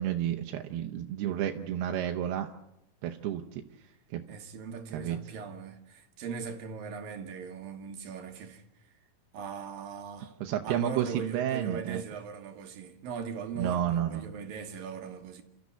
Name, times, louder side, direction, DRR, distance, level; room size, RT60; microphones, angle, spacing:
voice 1, 0.0-2.5 3.0-3.6 4.1-4.2 4.9-5.2 10.4-12.0 13.6-14.3, right 11 dB, 85° right, 3.0 m, -31 dB
voice 2, 4.3-8.6 9.3-10.4 10.6-15.4, right 6 dB, 65° right, 3.2 m, -39 dB
30.0 x 13.5 x 8.3 m
omnidirectional pair, 4.5 m